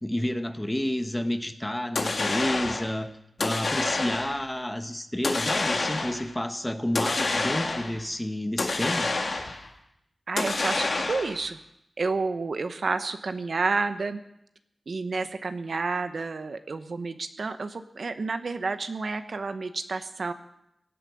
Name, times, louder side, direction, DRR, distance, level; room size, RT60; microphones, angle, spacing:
voice 1, 0.0-3.1 3.4-9.1, left 1 dB, 15° left, 8 dB, 1.1 m, -30 dB
sound 1, 2.0-2.9 3.4-4.5 5.2-6.3 7.0-8.0 8.6-9.7 10.4-11.5, left 3 dB, 70° left, 1.9 m, -28 dB
voice 2, 10.3-11.6 12.0-14.2 14.9-20.3, right 3 dB, 70° right, 10 dB, 0.8 m, -30 dB
17.0 x 8.9 x 6.4 m, 0.79 s
wide cardioid pair, 60°, 0 cm